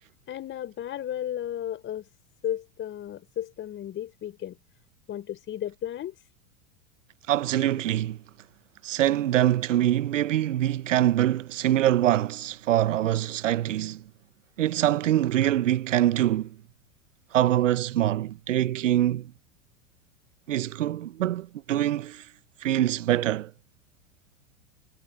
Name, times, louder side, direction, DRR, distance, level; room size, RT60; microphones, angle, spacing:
voice 1, 0.3-2.1 2.4-4.6 5.1-6.1, left 11 dB, 30° left, 4.0 m, -34 dB
voice 2, 7.3-8.2 8.8-14.0 14.6-16.5 17.3-19.3 20.5-22.2 22.6-23.5, right 12 dB, 80° right, 0.9 m, -24 dB
hypercardioid pair, 100°, 38 cm